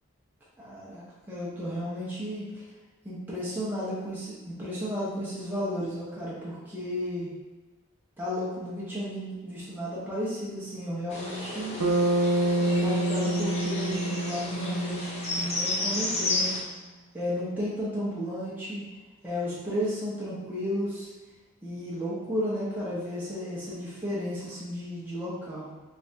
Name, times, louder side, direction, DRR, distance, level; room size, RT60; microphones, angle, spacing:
voice 1, 0.6-2.6 3.0-7.3 8.2-11.7 12.6-16.5 17.1-18.9 19.2-21.1 21.6-25.7, equal, 10° right, -9 dB, 0.8 m, -33 dB
sound 1, 11.1-16.6, left 2 dB, 30° left, 0.5 m, -32 dB
Bass guitar, 11.8-16.2, right 1 dB, 75° right, 0.5 m, -28 dB
3.4 x 3.3 x 2.7 m, 1.2 s
head